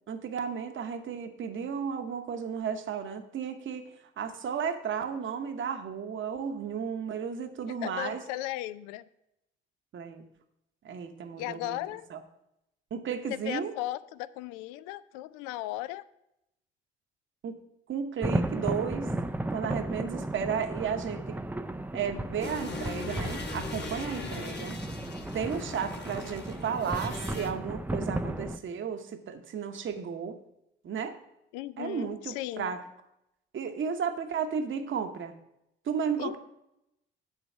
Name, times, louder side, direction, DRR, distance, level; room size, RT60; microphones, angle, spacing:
voice 1, 0.1-3.9 4.2-8.2 9.9-10.2 10.8-11.8 12.1-12.2 12.9-13.7 17.4-17.6 17.9-19.1 19.5-21.4 21.9-24.8 25.3-30.4 30.8-31.2 31.8-32.8 33.5-35.3 35.8-36.4, right 7 dB, 40° right, 7 dB, 0.9 m, -33 dB
voice 2, 7.8-9.0 11.4-12.1 13.3-16.0 24.2-24.7 31.5-32.7 36.2-36.4, left 15 dB, 70° left, 16 dB, 0.5 m, -36 dB
sound 1, 18.2-28.6, right 1 dB, 5° right, 0.5 m, -34 dB
sound 2, 22.4-27.5, left 3 dB, 35° left, 1.2 m, -40 dB
10.0 x 4.0 x 7.1 m, 0.84 s
figure-of-eight pair, 45°, 30 cm